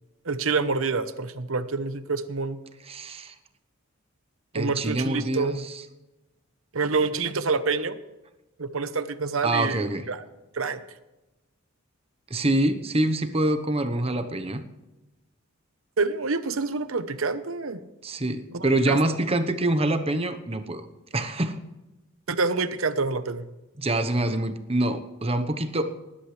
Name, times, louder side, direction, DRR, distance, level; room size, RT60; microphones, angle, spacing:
voice 1, 0.2-2.6 4.5-5.6 6.7-8.0 8.6-9.8 10.1-10.2 10.5-10.8 16.0-17.8 18.5-19.0 22.3-23.4, right 4 dB, 75° right, 11 dB, 1.0 m, -27 dB
voice 2, 2.9-3.3 4.5-5.6 9.4-10.1 12.3-14.6 18.0-20.9 21.1-21.6 23.8-25.8, right 1 dB, 30° right, 8 dB, 1.0 m, -25 dB
20.0 x 11.5 x 3.3 m, 1.0 s
head